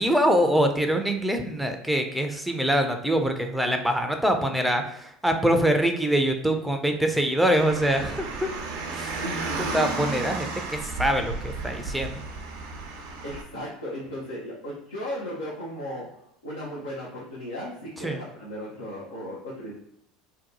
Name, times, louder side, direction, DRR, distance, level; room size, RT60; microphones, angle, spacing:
voice 1, 0.0-8.5 8.9-9.2 9.7-12.1 18.0-18.2, equal, ahead, 5 dB, 0.5 m, -24 dB
Car, 7.6-13.4, right 4 dB, 70° right, 0.6 m, -33 dB
voice 2, 9.2-9.8 13.2-16.0 16.4-19.7, equal, 85° left, -6 dB, 0.7 m, -35 dB
2.8 x 2.2 x 3.8 m, 0.76 s
hypercardioid pair, 75°, 0 cm